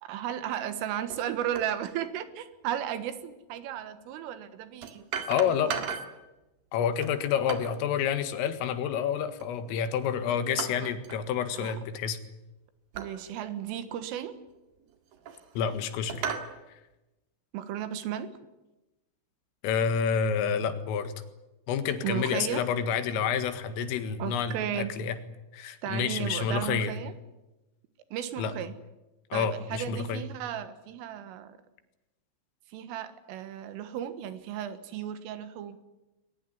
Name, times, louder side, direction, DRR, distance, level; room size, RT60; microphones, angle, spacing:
voice 1, 0.0-5.0 5.4-5.9 10.3-10.9 11.6-11.7 12.9-14.3 17.5-18.3 22.0-22.7 24.2-24.9 25.8-27.1 28.1-28.7 29.3-31.6 32.7-35.8, right 10 dB, 85° right, 11 dB, 4.1 m, -35 dB
sound 1, 1.1-1.2 1.6-1.7 3.5-3.6 4.8-6.2 7.0-7.8 9.4-9.8 10.6-11.2 11.5-11.8 12.9-13.2 13.8-13.9 14.8-15.6 16.1-16.5, right 7 dB, 55° right, 3.1 m, -36 dB
voice 2, 5.3-5.7 6.7-12.2 15.6-16.2 19.6-21.1 21.7-25.2 25.5-26.9 28.4-28.5 29.3-30.3, left 7 dB, 90° left, 10 dB, 4.3 m, -29 dB
22.0 x 20.0 x 9.7 m, 1.0 s
omnidirectional pair, 5.7 m